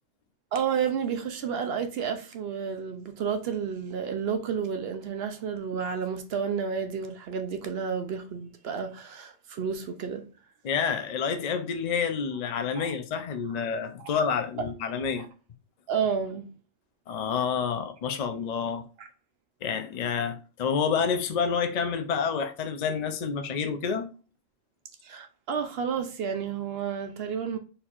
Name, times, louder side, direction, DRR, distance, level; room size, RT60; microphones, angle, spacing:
voice 1, 0.5-10.3 12.8-12.9 14.0-14.1 15.2-15.3 15.9-16.4 19.0-19.1 25.0-27.6, right 7 dB, 60° right, 0.7 m, -31 dB
voice 2, 10.6-15.3 17.1-18.8 19.6-24.1, left 6 dB, 50° left, 0.5 m, -28 dB
4.4 x 4.3 x 2.4 m
omnidirectional pair, 1.3 m